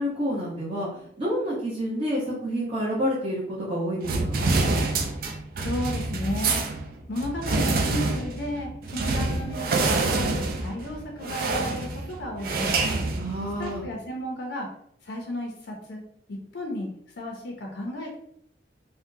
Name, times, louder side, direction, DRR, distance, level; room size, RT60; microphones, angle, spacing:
voice 1, 0.0-4.5 13.1-13.8, equal, 30° right, -7 dB, 0.8 m, -29 dB
sound 1, 4.0-13.8, right 3 dB, 55° right, 0.4 m, -27 dB
voice 2, 5.6-6.6 7.1-12.7 13.6-14.7 15.0-16.0 16.3-16.9 17.2-18.2, left 1 dB, 75° left, 1 dB, 0.6 m, -33 dB
3.6 x 2.1 x 2.7 m, 0.70 s
head